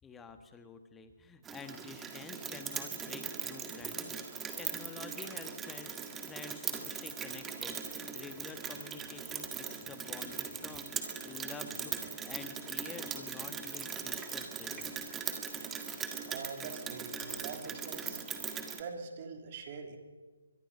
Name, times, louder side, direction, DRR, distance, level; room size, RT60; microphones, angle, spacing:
voice 1, 0.0-4.2 4.6-5.9 6.3-15.1, left 5 dB, 10° left, 8 dB, 1.4 m, -49 dB
Rain, 1.5-18.8, right 6 dB, 10° right, 1.8 m, -40 dB
voice 2, 16.3-18.2 18.7-20.0, right 5 dB, 35° right, 4 dB, 3.1 m, -43 dB
23.5 x 22.5 x 5.5 m, 1.4 s
figure-of-eight pair, 145°, 0 cm